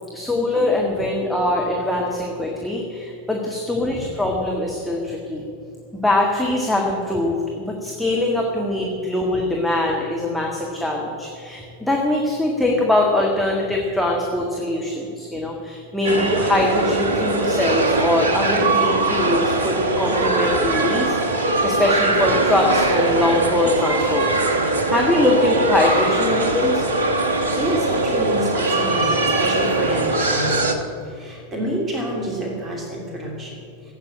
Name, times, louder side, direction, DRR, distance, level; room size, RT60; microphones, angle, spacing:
voice 1, 0.1-5.4 6.0-21.1 21.6-26.8, left 1 dB, ahead, -2 dB, 1.8 m, -22 dB
sound 1, 16.0-30.7, right 2 dB, 65° right, 1.3 m, -21 dB
voice 2, 27.6-30.9 31.2-33.5, equal, 20° right, -1 dB, 2.9 m, -27 dB
14.5 x 8.7 x 8.6 m, 2.5 s
figure-of-eight pair, 90°, 0 cm